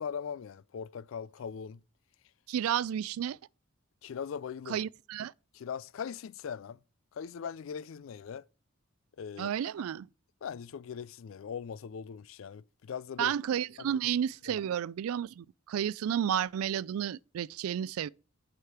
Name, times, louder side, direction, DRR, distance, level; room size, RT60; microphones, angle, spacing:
voice 1, 0.0-1.8 4.0-4.8 5.5-6.8 7.1-8.5 9.2-9.5 10.4-13.3 13.8-13.9 14.5-14.6, left 7 dB, 65° left, 0.3 m, -40 dB
voice 2, 2.5-3.4 4.7-5.3 9.4-10.1 13.2-18.1, right 9 dB, 85° right, 0.3 m, -32 dB
7.9 x 5.0 x 5.7 m
head